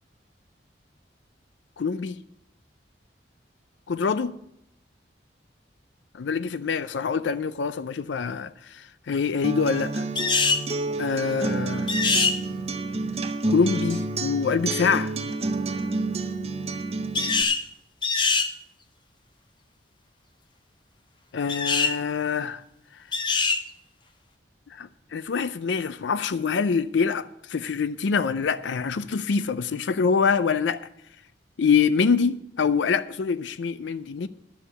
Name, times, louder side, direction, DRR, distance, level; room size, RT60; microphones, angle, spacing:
voice 1, 1.8-2.2 3.9-4.4 6.1-10.1 11.0-11.9 13.5-15.1 21.3-22.6 24.7-30.8 31.6-34.3, left 5 dB, 80° left, 0.4 m, -25 dB
Acoustic guitar, 9.4-17.4, right 3 dB, 35° right, 0.7 m, -29 dB
sound 1, 10.1-10.6 11.9-12.4 17.1-17.6 18.0-18.5 21.5-21.9 23.1-23.6, left 4 dB, 25° left, 0.7 m, -23 dB
11.0 x 7.1 x 8.1 m
head